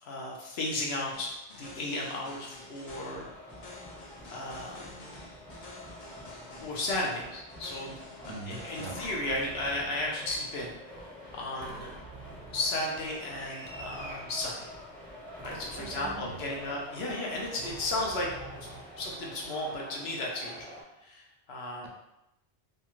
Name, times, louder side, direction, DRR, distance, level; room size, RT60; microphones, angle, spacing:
voice 1, 0.0-3.3 4.3-5.1 6.6-8.0 8.4-10.7 11.0-12.0 12.5-14.7 15.4-18.3 18.6-18.7 19.0-20.5 21.0-21.9, left 2 dB, 70° left, -2 dB, 0.9 m, -34 dB
sound 1, 1.1-9.1, left 2 dB, 45° left, 0.5 m, -49 dB
sound 2, 2.8-20.8, left 1 dB, ahead, 0.6 m, -47 dB
voice 2, 8.3-9.0 15.7-16.4, right 3 dB, 80° right, 1 dB, 0.9 m, -42 dB
sound 3, 8.9-10.3 11.6-13.1 13.7-15.0 15.4-17.3 17.6-19.3 20.2-20.3 20.6-20.7, right 3 dB, 40° right, 0.6 m, -48 dB
2.7 x 2.3 x 2.9 m, 0.89 s
omnidirectional pair, 1.1 m